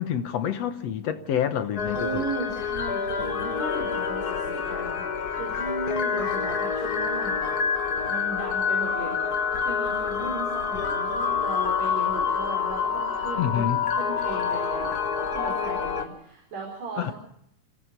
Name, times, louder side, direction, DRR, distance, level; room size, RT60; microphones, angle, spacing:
voice 1, 0.0-2.3 13.4-13.8 17.0-17.1, left 9 dB, 65° left, 2.0 m, -27 dB
sound 1, 1.8-16.0, left 6 dB, 45° left, 1.3 m, -27 dB
voice 2, 1.9-5.0 5.3-7.6 8.1-15.0 15.3-17.1, right 2 dB, 60° right, 5.8 m, -36 dB
27.0 x 17.5 x 6.7 m
omnidirectional pair, 3.6 m